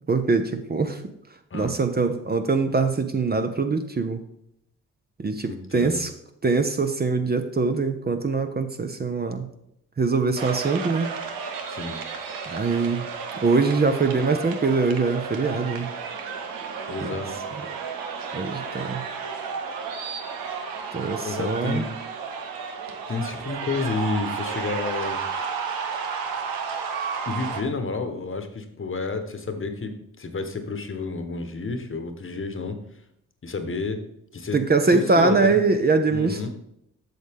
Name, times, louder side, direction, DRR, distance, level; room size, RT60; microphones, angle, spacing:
voice 1, 0.1-1.0 1.5-4.2 5.2-6.1 6.4-9.5 10.0-11.1 12.5-13.0 13.4-15.9 17.0-17.2 17.6-17.7 18.3-19.0 20.9-21.8 34.5-36.5, right 4 dB, 30° right, 7 dB, 0.8 m, -23 dB
voice 2, 5.4-6.0 11.7-12.0 16.9-17.4 21.2-22.0 23.1-25.2 27.3-32.8 33.4-34.1 34.3-34.6 34.9-35.6 36.1-36.5, left 4 dB, 35° left, 8 dB, 1.2 m, -30 dB
sound 1, 10.4-27.6, right 6 dB, 85° right, 0.9 m, -32 dB
7.8 x 6.4 x 3.6 m, 0.78 s
supercardioid pair, 50°, 34 cm